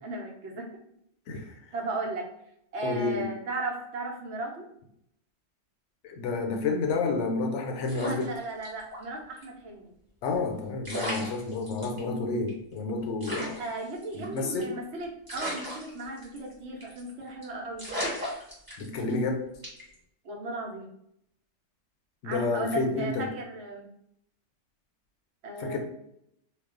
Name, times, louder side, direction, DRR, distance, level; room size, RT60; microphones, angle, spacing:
voice 1, 0.0-0.7 1.3-2.3 2.7-4.7 8.1-9.9 13.3-17.8 20.2-20.9 22.2-23.9 25.4-25.8, right 2 dB, 70° right, 0 dB, 1.0 m, -36 dB
voice 2, 2.8-3.3 6.0-8.3 10.2-13.5 14.1-14.7 18.8-19.4 22.2-23.3 25.6-25.8, left 3 dB, 80° left, 3 dB, 0.9 m, -30 dB
sound 1, 7.8-9.0 9.4-9.5 10.5-10.6 10.8-12.0 12.5-12.6 12.8-12.9 13.2-14.8 15.3-16.5 16.8-17.1 17.4-17.5 17.8-19.2 19.6-19.9, equal, 20° right, 1.0 m, -36 dB
2.4 x 2.2 x 3.6 m, 0.74 s
omnidirectional pair, 1.2 m